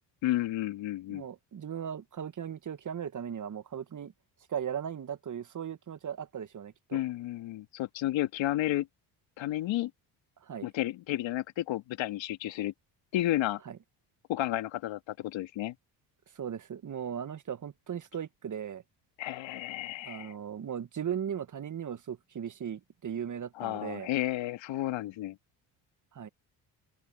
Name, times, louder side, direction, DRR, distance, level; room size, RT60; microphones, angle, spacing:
voice 1, 0.2-1.2 6.9-8.9 9.4-9.9 10.6-12.7 13.1-13.6 14.3-15.7 19.2-20.4 23.6-25.4, left 14 dB, 65° left, 1.9 m, -32 dB
voice 2, 1.1-4.1 4.5-7.0 10.4-10.7 13.6-13.8 16.3-18.8 20.0-24.1 26.1-26.3, right 8 dB, 40° right, 1.5 m, -37 dB
open air
supercardioid pair, 65°, 48 cm